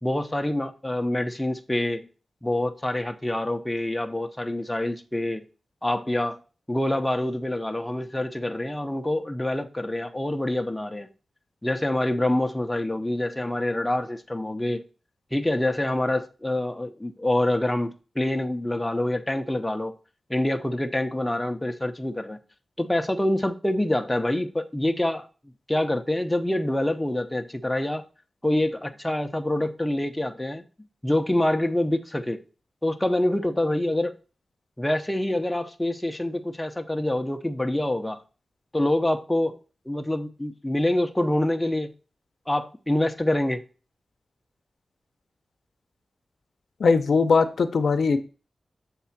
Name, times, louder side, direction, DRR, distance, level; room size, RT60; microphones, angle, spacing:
voice 1, 0.0-2.1 2.4-5.4 5.8-6.4 6.7-11.1 11.6-14.8 15.3-20.0 20.3-22.4 22.8-25.3 25.7-28.0 28.4-30.6 31.0-32.4 32.8-34.2 34.8-38.2 38.7-39.6 39.9-41.9 42.5-43.6, left 1 dB, 10° left, 0.6 m, -26 dB
voice 2, 46.8-48.2, left 4 dB, 75° left, 0.6 m, -20 dB
7.0 x 3.7 x 5.7 m
wide cardioid pair, 125°, 0 cm